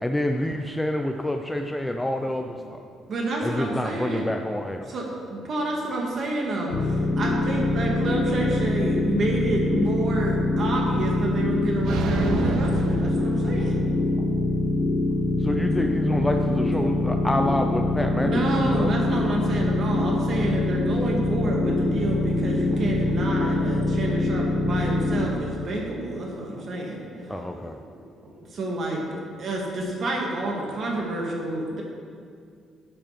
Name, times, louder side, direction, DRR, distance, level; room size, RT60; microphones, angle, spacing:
voice 1, 0.0-2.8 3.4-4.9 15.4-18.9 27.3-27.8, left 1 dB, 5° left, 5 dB, 0.5 m, -27 dB
voice 2, 3.1-4.3 4.9-13.8 18.2-27.0 28.5-29.0 29.4-31.8, right 2 dB, 45° right, -1 dB, 1.9 m, -28 dB
sound 1, 6.7-25.3, left 2 dB, 35° left, 0.8 m, -24 dB
voice 3, 11.2-11.6 11.9-14.3 16.7-17.0 20.7-20.8 21.9-24.5 25.9-28.4, equal, 30° right, -4 dB, 2.8 m, -46 dB
sound 2, 11.8-14.0, right 5 dB, 70° right, 0.6 m, -30 dB
9.9 x 7.7 x 5.8 m, 2.3 s
cardioid pair, 120°, 0 cm